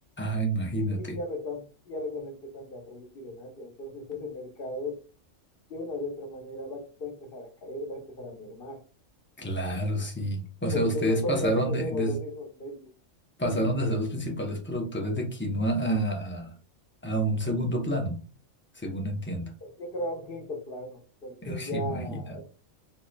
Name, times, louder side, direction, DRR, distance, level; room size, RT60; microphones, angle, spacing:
voice 1, 0.2-1.2 9.4-12.1 13.4-16.5 17.0-18.2 18.8-19.5 21.4-22.4, right 1 dB, 15° left, 2 dB, 0.5 m, -29 dB
voice 2, 0.7-5.0 5.7-8.8 10.7-12.9 19.6-22.4, left 2 dB, 50° left, 3 dB, 1.1 m, -36 dB
4.3 x 3.0 x 2.2 m, 0.36 s
omnidirectional pair, 1.3 m